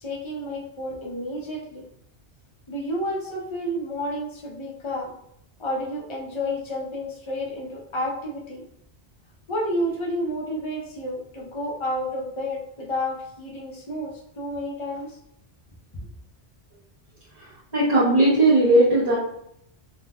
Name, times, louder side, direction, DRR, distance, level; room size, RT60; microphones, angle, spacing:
voice 1, 0.0-1.8 2.7-5.1 5.6-8.6 9.5-15.2, equal, 35° left, -1 dB, 0.6 m, -30 dB
voice 2, 17.3-19.2, right 1 dB, 40° right, -9 dB, 0.8 m, -18 dB
3.6 x 2.2 x 2.3 m, 0.73 s
omnidirectional pair, 1.1 m